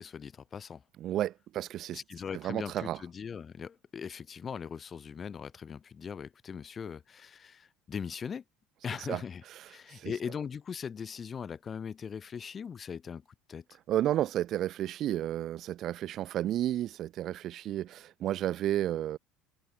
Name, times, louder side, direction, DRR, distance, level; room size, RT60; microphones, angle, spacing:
voice 1, 0.0-0.8 1.9-8.4 8.8-13.6, left 7 dB, 30° left, 2.5 m, -40 dB
voice 2, 1.0-2.0 2.3-3.0 9.1-9.2 9.9-10.1 13.9-19.2, right 12 dB, 50° right, 0.9 m, -32 dB
open air
supercardioid pair, 105°, 0 cm